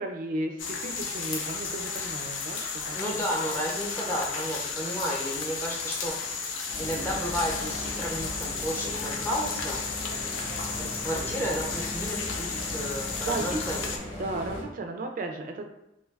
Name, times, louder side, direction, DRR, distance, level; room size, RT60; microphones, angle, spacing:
voice 1, 0.0-3.0 13.3-13.6 14.2-15.7, right 2 dB, 45° right, 4 dB, 0.3 m, -34 dB
sound 1, 0.6-14.0, left 5 dB, 85° left, 0.4 m, -33 dB
voice 2, 2.9-6.1 6.8-9.8 10.8-13.9, equal, 10° left, -4 dB, 0.5 m, -32 dB
sound 2, 6.7-14.6, equal, 65° left, 0.9 m, -38 dB
2.6 x 2.2 x 3.2 m, 0.86 s
head